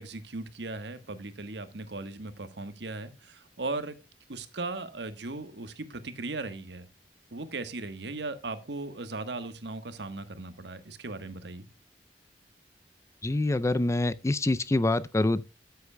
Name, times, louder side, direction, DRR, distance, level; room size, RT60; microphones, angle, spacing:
voice 1, 0.0-4.0 4.3-6.9 7.3-11.7, right 3 dB, 75° right, 1.3 m, -37 dB
voice 2, 13.2-15.4, left 2 dB, 15° left, 0.4 m, -26 dB
13.0 x 8.2 x 2.2 m
head